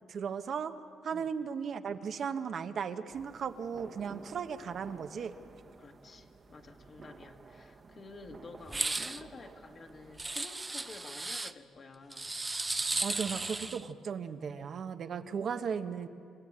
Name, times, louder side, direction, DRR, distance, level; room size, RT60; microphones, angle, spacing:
voice 1, 0.1-0.7 1.0-5.3 13.0-16.1, right 6 dB, 55° right, 8 dB, 1.0 m, -36 dB
sound 1, 3.1-10.2, right 4 dB, 40° right, 1.2 m, -53 dB
voice 2, 5.8-12.3, left 3 dB, 45° left, 4 dB, 1.8 m, -51 dB
sound 2, 8.7-9.2 10.2-11.5 12.1-13.8, right 2 dB, 20° right, 0.7 m, -35 dB
27.0 x 13.5 x 8.7 m, 2.4 s
cardioid pair, 90°, 0 cm